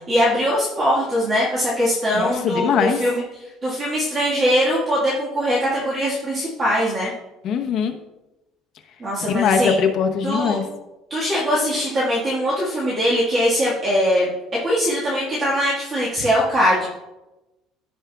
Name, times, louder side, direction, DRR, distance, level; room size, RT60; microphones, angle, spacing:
voice 1, 0.1-3.2 3.6-7.1 9.0-9.7 10.2-10.6 11.1-14.3 14.6-16.9, equal, 20° right, -7 dB, 1.6 m, -21 dB
voice 2, 2.1-3.0 7.4-8.0 9.2-10.6, left 6 dB, 40° left, 4 dB, 0.9 m, -21 dB
15.0 x 5.0 x 2.3 m, 1.0 s
cardioid pair, 175°, 0 cm